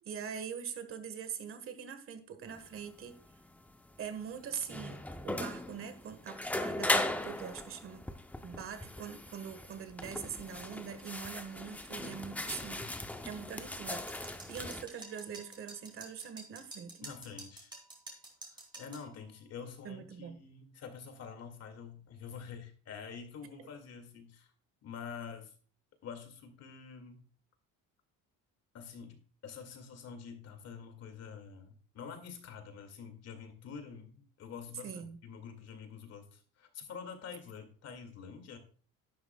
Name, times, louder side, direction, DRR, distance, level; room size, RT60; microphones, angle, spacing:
voice 1, 0.0-3.2 4.0-8.0 8.4-12.9 13.2-17.1 19.8-20.4 34.8-35.2, right 7 dB, 40° right, 1.4 m, -43 dB
sound 1, 2.5-14.8, left 1 dB, 5° left, 0.6 m, -38 dB
sound 2, 13.9-19.1, right 2 dB, 15° right, 2.7 m, -49 dB
voice 2, 17.0-17.7 18.5-24.5 24.8-25.5 26.0-27.2 28.7-34.9 35.2-38.6, left 6 dB, 45° left, 2.2 m, -47 dB
11.0 x 11.0 x 2.3 m
cardioid pair, 155°, 34 cm